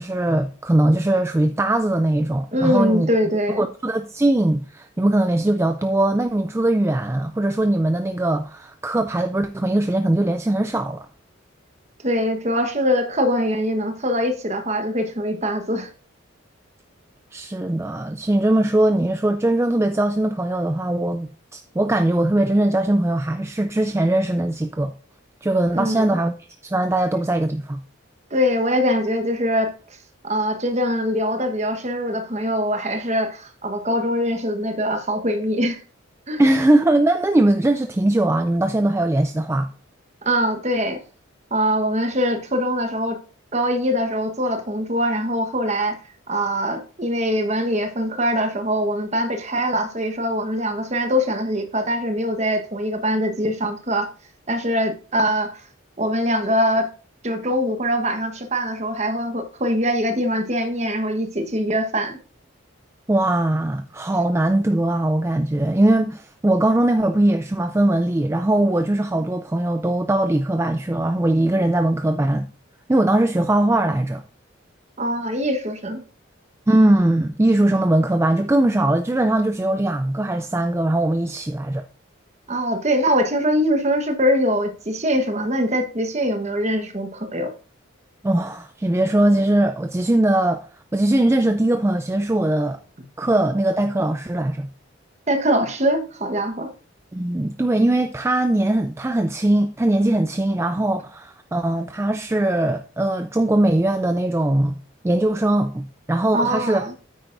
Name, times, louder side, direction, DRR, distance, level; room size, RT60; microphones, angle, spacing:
voice 1, 0.0-3.1 3.6-11.1 17.3-24.9 25.4-26.4 26.6-27.8 36.4-39.7 63.1-72.5 72.9-74.2 76.7-81.8 88.2-90.7 90.9-92.8 93.2-94.7 97.1-104.7 105.0-106.9, right 1 dB, 15° right, 0.3 m, -20 dB
voice 2, 2.5-3.6 12.0-15.9 25.7-26.2 28.3-29.7 30.2-35.8 36.3-36.4 40.2-41.0 41.5-43.2 43.5-46.0 46.3-54.1 54.5-55.6 56.0-56.9 57.2-62.2 75.0-76.0 82.5-87.5 95.3-96.7 106.3-106.9, equal, 35° right, 1.2 m, -23 dB
9.0 x 8.9 x 2.6 m
head